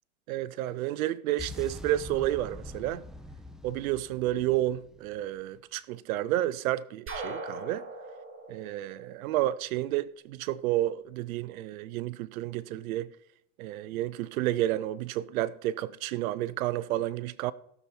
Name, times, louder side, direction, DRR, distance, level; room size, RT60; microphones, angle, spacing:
voice 1, 0.3-3.0 3.6-7.9 8.5-13.1 13.6-17.5, right 14 dB, 75° right, 0.6 m, -30 dB
sound 1, 1.4-5.5, left 1 dB, ahead, 1.0 m, -44 dB
Harmonics with exp, 7.1-9.9, right 2 dB, 30° right, 2.9 m, -40 dB
17.0 x 7.0 x 4.4 m
hypercardioid pair, 105°, 43 cm